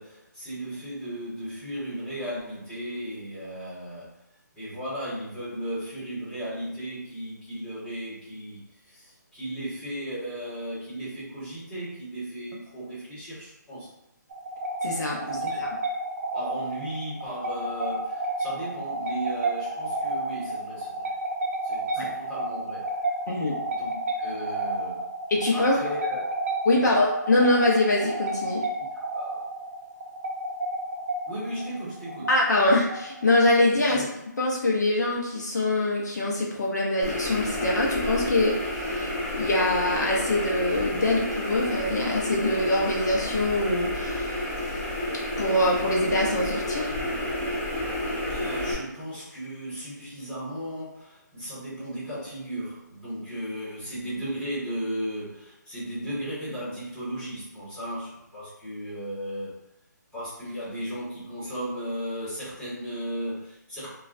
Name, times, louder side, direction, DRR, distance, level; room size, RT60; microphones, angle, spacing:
voice 1, 0.0-4.2 4.6-13.9 15.3-15.6 16.3-21.1 21.6-22.9 23.7-25.1 25.5-26.2 26.7-27.0 28.9-29.5 31.3-32.3 33.9-34.0 48.3-59.6 60.1-63.9, right 1 dB, 5° left, -14 dB, 1.3 m, -35 dB
sound 1, 14.3-33.7, right 2 dB, 45° right, 0.5 m, -31 dB
voice 2, 14.8-15.2 15.6-15.7 22.0-22.1 23.3-23.6 25.3-25.8 26.6-28.6 32.3-34.0 34.4-44.5 45.4-46.9, left 2 dB, 65° left, -2 dB, 0.7 m, -24 dB
sound 2, 37.0-48.7, left 1 dB, 30° left, 1.3 m, -30 dB
3.1 x 2.4 x 2.5 m, 0.87 s
hypercardioid pair, 165°, 10 cm